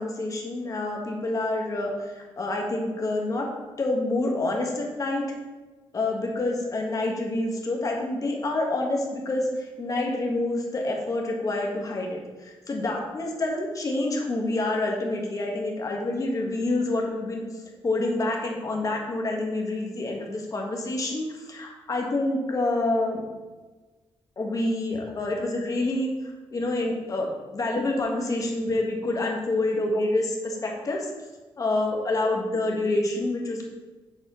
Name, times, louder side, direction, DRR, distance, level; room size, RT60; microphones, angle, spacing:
voice 1, 0.0-3.5 3.8-5.2 5.9-17.4 17.8-23.3 24.4-31.1 31.6-33.7, left 2 dB, 35° left, 0 dB, 1.4 m, -27 dB
7.1 x 4.3 x 5.5 m, 1.3 s
wide cardioid pair, 140°, 10 cm